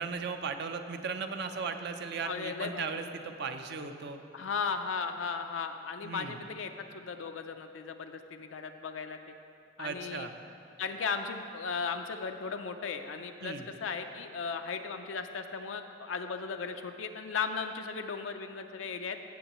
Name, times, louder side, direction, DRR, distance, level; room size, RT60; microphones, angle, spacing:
voice 1, 0.0-4.2 6.0-6.4 9.8-10.3 13.4-13.7, right 5 dB, 60° right, 7 dB, 0.6 m, -37 dB
voice 2, 2.2-3.0 4.3-9.2 9.8-10.3 10.8-19.2, left 5 dB, 90° left, 6 dB, 0.5 m, -36 dB
16.0 x 7.3 x 3.0 m, 2.6 s
head